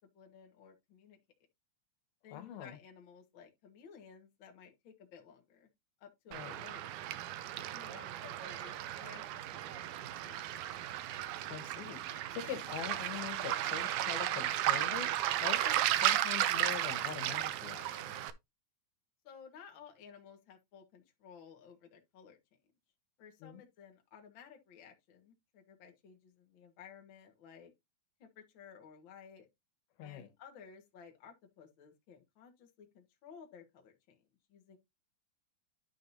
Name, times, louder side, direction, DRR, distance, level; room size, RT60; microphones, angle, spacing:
voice 1, 0.1-1.2 2.2-5.7 6.0-6.9 7.7-10.7 19.2-22.6 23.2-27.7 28.2-29.5 30.0-34.2 34.5-34.8, left 7 dB, 45° left, 1.8 m, -56 dB
voice 2, 2.3-2.8 6.3-6.6 11.5-18.2 23.4-23.6 30.0-30.3, left 10 dB, 80° left, 3.1 m, -44 dB
Waves surf, 6.3-18.3, right 13 dB, 85° right, 1.7 m, -34 dB
11.5 x 5.2 x 2.8 m
omnidirectional pair, 4.3 m